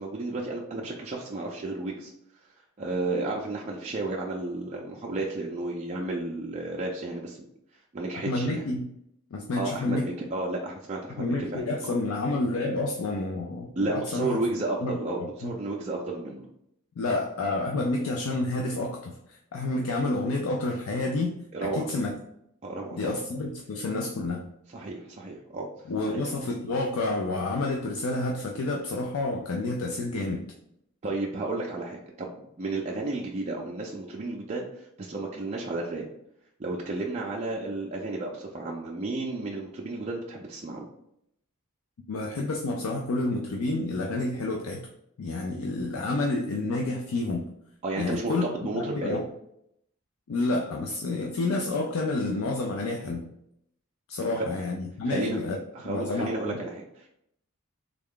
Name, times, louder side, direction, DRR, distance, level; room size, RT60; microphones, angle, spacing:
voice 1, 0.0-2.1 2.8-7.4 7.9-8.6 9.6-11.6 13.8-16.5 21.5-21.9 22.6-23.1 24.7-25.7 26.1-26.2 31.0-36.0 36.6-40.9 47.8-49.2 54.3-54.5 55.1-55.4 55.7-57.1, right 2 dB, 30° right, -2 dB, 0.4 m, -32 dB
voice 2, 8.3-8.9 9.3-10.1 11.2-14.4 14.8-15.5 17.0-22.1 23.0-24.5 25.9-30.5 42.1-44.9 45.2-47.4 48.0-48.4 48.7-49.2 50.3-53.3 54.1-55.6 55.8-56.6, left 2 dB, 75° left, 1 dB, 0.4 m, -29 dB
3.5 x 2.3 x 3.6 m, 0.76 s
head